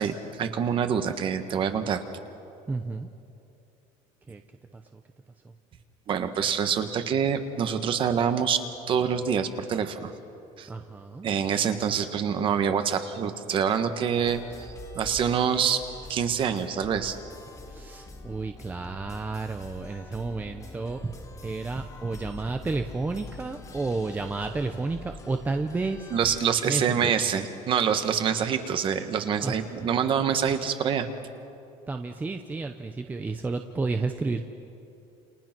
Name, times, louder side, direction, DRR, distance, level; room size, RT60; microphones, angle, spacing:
voice 1, 0.0-2.0 6.1-10.1 10.6-10.7 11.2-15.8 16.1-17.2 26.1-31.1, right 7 dB, 35° right, 8 dB, 1.5 m, -26 dB
voice 2, 2.7-3.1 4.3-4.4 4.7-5.0 5.4-5.5 10.7-11.3 17.7-26.1 26.6-27.1 29.4-29.9 31.9-34.4, right 3 dB, 10° right, 6 dB, 0.7 m, -31 dB
sound 1, 14.2-26.4, left 3 dB, 25° left, 2.2 m, -45 dB
29.5 x 29.0 x 6.1 m, 2.8 s
cardioid pair, 170°, 15 cm